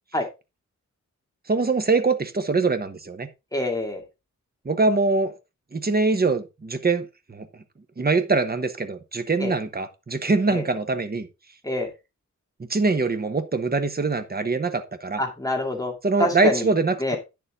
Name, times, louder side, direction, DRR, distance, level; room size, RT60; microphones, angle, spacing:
voice 1, 1.5-3.3 4.6-5.3 5.7-7.5 8.0-11.3 12.7-15.2 16.0-17.2, right 3 dB, 30° right, 1.2 m, -23 dB
voice 2, 3.5-4.0 9.4-9.5 10.5-10.6 11.6-11.9 15.2-15.9 16.2-16.7 17.0-17.2, left 1 dB, 10° left, 2.4 m, -26 dB
9.7 x 7.0 x 3.6 m
wide cardioid pair, 145°, 30 cm